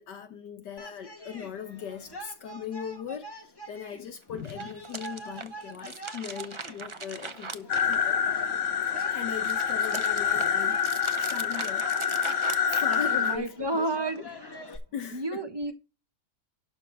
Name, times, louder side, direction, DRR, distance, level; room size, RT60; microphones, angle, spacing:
voice 1, 0.0-3.3 3.7-8.2 9.0-11.9 12.7-13.9 14.2-14.3 14.7-15.4, left 7 dB, 70° left, 1.6 m, -39 dB
sound 1, 0.8-14.8, right 1 dB, 15° left, 1.8 m, -45 dB
sound 2, 4.3-8.5 8.9-13.5, right 4 dB, 50° right, 0.3 m, -40 dB
sound 3, 7.7-13.4, left 7 dB, 50° left, 1.2 m, -27 dB
voice 2, 13.1-14.6 15.1-15.7, right 2 dB, 15° right, 1.1 m, -31 dB
12.0 x 4.1 x 6.2 m
omnidirectional pair, 2.0 m